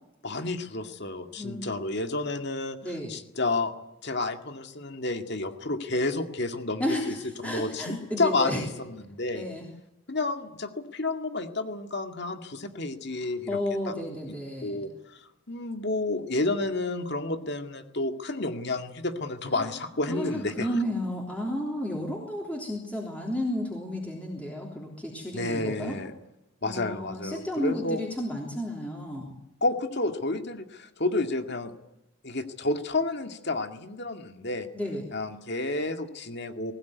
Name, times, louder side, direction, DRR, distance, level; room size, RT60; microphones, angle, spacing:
voice 1, 0.2-2.8 3.1-3.7 4.0-7.2 7.4-9.4 10.1-13.6 14.6-15.2 15.5-20.7 25.3-26.1 26.6-28.0 29.6-31.7 32.2-34.7 35.1-36.7, left 2 dB, 50° left, 6 dB, 2.2 m, -30 dB
voice 2, 2.8-3.2 6.8-8.6 9.3-9.7 13.2-14.9 19.5-19.7 20.1-26.0 26.7-29.4 34.7-35.0, equal, 5° left, -2 dB, 3.5 m, -32 dB
20.5 x 18.5 x 9.6 m, 0.94 s
head